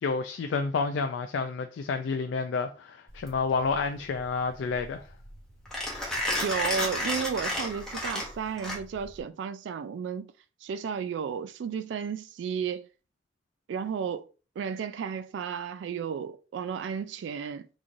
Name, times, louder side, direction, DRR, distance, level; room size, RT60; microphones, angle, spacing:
voice 1, 0.0-5.1, left 4 dB, 90° left, 0.3 m, -29 dB
Mechanisms, 3.1-9.2, left 1 dB, 5° left, 1.1 m, -32 dB
voice 2, 6.4-10.3 10.6-12.9 13.7-14.3 14.6-17.7, right 6 dB, 80° right, 0.3 m, -33 dB
3.8 x 3.0 x 2.5 m
head